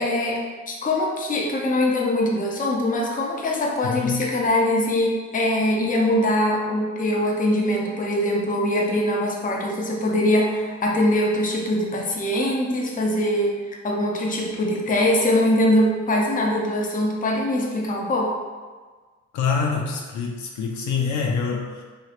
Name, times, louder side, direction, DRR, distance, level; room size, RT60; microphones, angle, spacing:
voice 1, 0.0-13.6 13.8-18.4, left 1 dB, 25° left, -1 dB, 0.6 m, -22 dB
voice 2, 3.8-4.3 19.3-21.8, left 5 dB, 70° left, 0 dB, 0.5 m, -26 dB
3.0 x 2.9 x 2.4 m, 1.4 s
cardioid pair, 90°, 30 cm